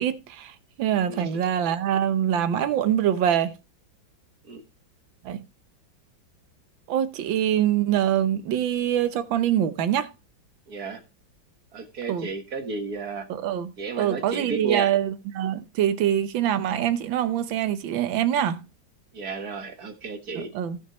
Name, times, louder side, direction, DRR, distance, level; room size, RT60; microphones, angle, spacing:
voice 1, 0.0-3.5 5.2-5.4 6.9-10.1 12.1-12.3 13.3-18.7 20.3-20.8, right 10 dB, 75° right, 1.6 m, -24 dB
voice 2, 10.7-11.0 11.7-13.3 13.8-14.9 19.1-20.5, right 4 dB, 50° right, 1.9 m, -32 dB
16.5 x 6.2 x 3.0 m
omnidirectional pair, 2.1 m